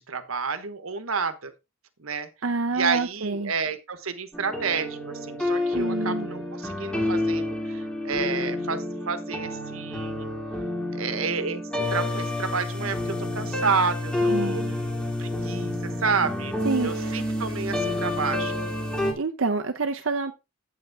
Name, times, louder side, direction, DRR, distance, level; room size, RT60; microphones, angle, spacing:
voice 1, 0.1-1.5 2.0-2.3 2.7-10.3 10.9-14.6 15.0-18.5, right 5 dB, 85° right, 1.2 m, -30 dB
voice 2, 2.4-3.5 5.7-6.3 14.3-14.7 16.6-17.3 19.2-20.3, right 3 dB, 65° right, 0.7 m, -27 dB
sound 1, 4.3-19.1, left 1 dB, 5° left, 2.3 m, -29 dB
8.7 x 8.1 x 3.5 m
head